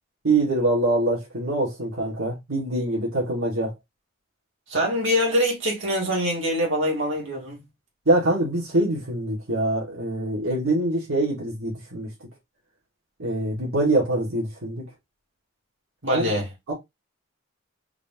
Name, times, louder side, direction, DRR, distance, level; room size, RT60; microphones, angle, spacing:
voice 1, 0.2-3.7 8.1-12.1 13.2-14.8 16.1-16.3 16.7-16.8, right 2 dB, 90° right, 2.1 m, -24 dB
voice 2, 4.7-7.6 16.0-16.5, equal, 65° right, 2.5 m, -24 dB
4.8 x 2.9 x 3.6 m
head